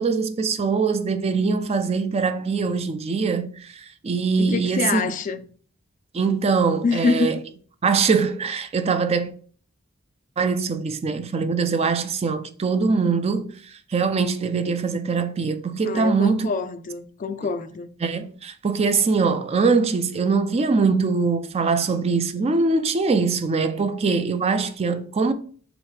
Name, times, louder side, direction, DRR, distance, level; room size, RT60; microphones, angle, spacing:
voice 1, 0.0-5.0 6.1-7.4 7.8-9.3 10.4-16.5 18.0-25.3, right 4 dB, 30° right, 0.4 m, -22 dB
voice 2, 4.4-5.4 6.8-7.4 15.8-17.9, left 4 dB, 40° left, 0.3 m, -25 dB
3.5 x 3.0 x 4.8 m
head